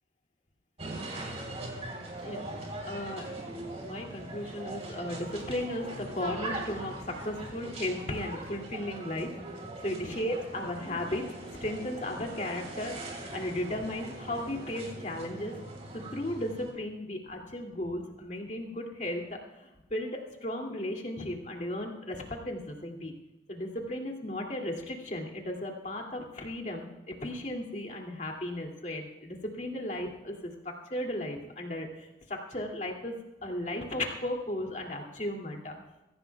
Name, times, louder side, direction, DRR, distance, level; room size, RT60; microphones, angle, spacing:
sound 1, 0.8-16.7, right 2 dB, 35° right, 3.7 m, -41 dB
voice 1, 2.2-3.4 3.8-9.3 9.8-11.3 11.6-15.5 15.9-23.1 23.5-33.2 33.4-35.7, left 1 dB, 40° left, 1 dB, 2.5 m, -35 dB
22.5 x 16.5 x 2.3 m, 1.0 s
head